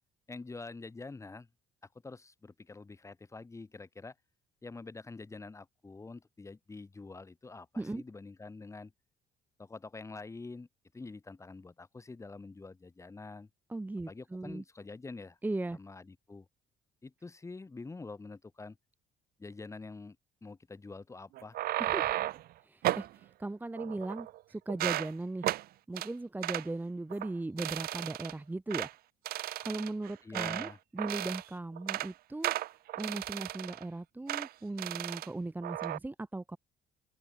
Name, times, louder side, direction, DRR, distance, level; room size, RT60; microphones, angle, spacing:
voice 1, 0.3-1.5 2.0-4.2 4.6-8.9 9.6-10.7 10.9-13.5 14.1-15.4 15.7-16.5 17.0-18.8 19.4-20.2 20.4-21.6 30.2-30.8, left 3 dB, 15° left, 1.9 m, -46 dB
voice 2, 13.7-14.6 15.4-15.8 21.8-22.2 22.6-25.5 25.9-28.9 29.6-32.5 32.9-36.6, right 2 dB, 10° right, 0.9 m, -38 dB
sound 1, 21.4-22.5 22.8-23.1 23.8-24.4 24.7-25.1 25.4-25.6 26.0-26.1 26.4-26.7 27.1-27.3 27.6-28.3 28.7-28.9 29.3-30.7 31.0-31.5 31.8-32.1 32.4-33.8 34.3-34.5 34.8-35.3 35.6-36.0, right 15 dB, 65° right, 0.6 m, -34 dB
open air
cardioid pair, 110°, 17 cm